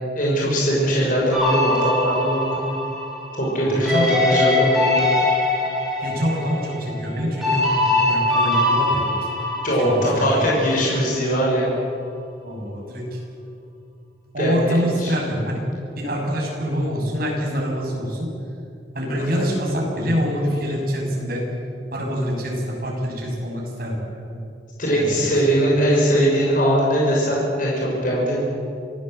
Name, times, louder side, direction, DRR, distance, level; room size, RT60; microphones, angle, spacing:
voice 1, 0.1-2.6 3.4-5.0 9.6-11.6 14.4-15.1 19.1-19.4 24.8-28.4, equal, 50° left, -4 dB, 6.1 m, -21 dB
sound 1, 1.3-10.7, left 2 dB, ahead, 7.6 m, -22 dB
voice 2, 3.6-4.1 6.0-9.1 9.8-10.2 12.4-13.2 14.3-15.6 15.9-18.3 18.9-21.5 21.9-24.0 24.3-24.4 24.9-25.3, equal, 55° right, -1 dB, 6.6 m, -25 dB
26.0 x 16.5 x 7.9 m, 2.5 s
head